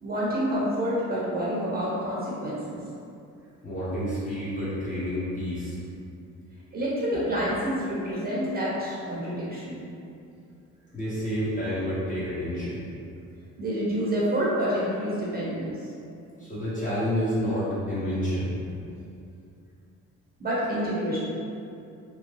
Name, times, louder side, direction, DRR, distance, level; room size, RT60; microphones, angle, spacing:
voice 1, 0.0-2.8 6.7-9.8 13.6-15.8 20.4-21.2, equal, 30° right, -7 dB, 0.9 m, -28 dB
voice 2, 3.6-5.8 10.9-12.9 16.4-18.8, equal, 25° left, -10 dB, 1.2 m, -29 dB
2.9 x 2.2 x 3.0 m, 2.6 s
cardioid pair, 90°, 30 cm